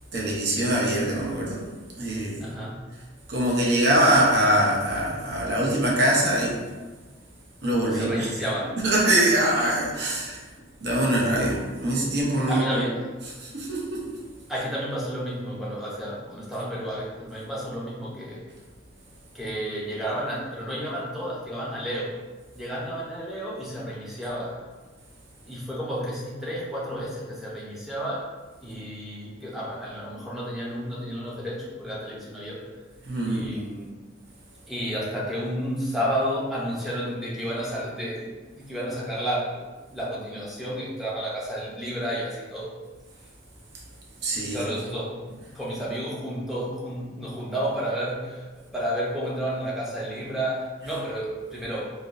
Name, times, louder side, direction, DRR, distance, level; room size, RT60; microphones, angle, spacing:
voice 1, 0.1-1.7 2.0-2.4 3.3-6.6 7.6-8.3 8.8-10.4 10.8-12.8 13.4-14.1 33.0-33.5 44.2-44.7, right 1 dB, 55° right, -4 dB, 0.7 m, -23 dB
voice 2, 2.4-2.8 7.9-8.8 12.3-13.0 14.5-18.5 19.3-22.2 22.5-24.6 25.5-28.3 28.6-32.6 33.3-34.0 34.7-39.6 39.9-42.7 44.4-51.9, equal, ahead, -6 dB, 0.6 m, -31 dB
3.4 x 2.7 x 2.5 m, 1.3 s
head